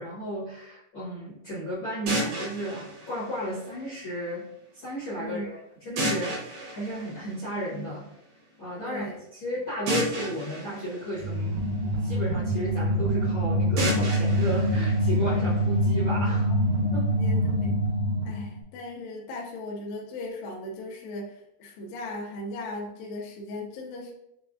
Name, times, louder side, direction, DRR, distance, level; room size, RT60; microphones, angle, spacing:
voice 1, 0.0-4.4 4.7-5.6 5.8-8.0 8.6-16.5 16.9-17.1, equal, 60° left, -10 dB, 1.2 m, -34 dB
sound 1, 2.1-4.1 6.0-7.9 9.9-12.1 13.8-15.8, right 1 dB, 65° right, 2.6 m, -33 dB
voice 2, 8.8-9.2 17.1-17.8 18.2-24.1, left 2 dB, 80° left, -1 dB, 2.1 m, -37 dB
sound 2, 11.2-18.5, equal, 85° right, 3.1 m, -25 dB
6.7 x 2.3 x 2.5 m, 0.81 s
omnidirectional pair, 4.7 m